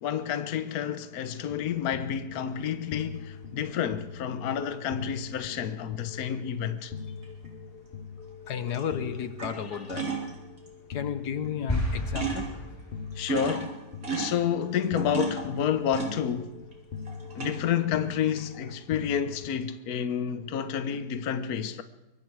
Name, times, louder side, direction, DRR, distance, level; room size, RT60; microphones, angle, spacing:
voice 1, 0.0-6.9 10.0-10.2 13.2-13.8 14.1-16.5 17.3-21.8, left 9 dB, 65° left, 1.4 m, -29 dB
sound 1, 1.5-19.5, left 5 dB, 40° left, 0.9 m, -43 dB
sound 2, 3.2-3.3 7.2-7.5 8.5-8.8 9.2-10.7 11.5-11.6 11.8-11.9 12.2-12.7 13.1-16.7 17.1-17.8 18.2-18.7, right 6 dB, 55° right, 3.9 m, -35 dB
voice 2, 8.5-10.1 10.9-12.5, left 8 dB, 85° left, 1.6 m, -33 dB
sound 3, 11.7-13.3, left 1 dB, 15° left, 6.0 m, -31 dB
24.0 x 22.5 x 4.7 m
omnidirectional pair, 1.7 m